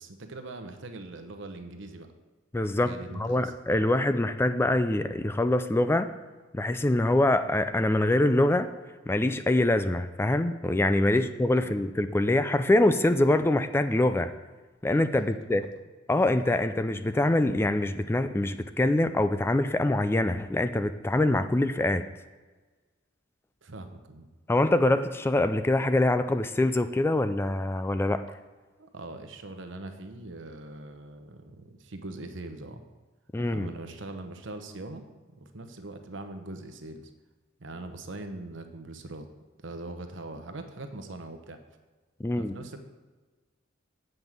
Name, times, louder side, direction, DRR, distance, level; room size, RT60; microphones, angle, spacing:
voice 1, 0.0-2.1 2.8-3.5 11.1-11.8 15.4-15.7 23.6-24.3 28.8-32.8 33.5-35.0 35.4-37.1 37.6-39.3 39.6-41.6 42.4-42.8, right 2 dB, 70° right, 7 dB, 0.9 m, -42 dB
voice 2, 2.5-6.1 6.5-8.7 9.1-14.3 14.8-15.7 16.1-22.0 24.5-28.2 33.3-33.7 42.2-42.5, left 1 dB, 10° left, 11 dB, 0.3 m, -24 dB
8.0 x 5.3 x 7.4 m, 1.3 s
head